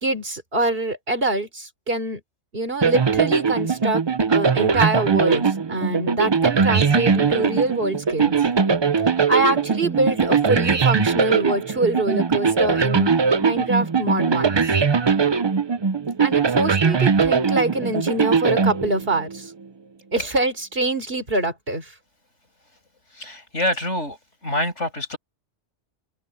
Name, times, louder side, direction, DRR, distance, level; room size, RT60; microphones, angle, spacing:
voice 1, 0.0-2.2 2.5-4.0 4.3-8.4 9.3-14.6 16.2-19.5 20.1-21.9, right 2 dB, 50° right, 4.1 m, -24 dB
sound 1, 2.8-19.4, right 5 dB, 35° right, 0.4 m, -20 dB
voice 2, 23.1-24.2 24.4-25.2, left 1 dB, 75° left, 8.4 m, -26 dB
omnidirectional pair, 1.2 m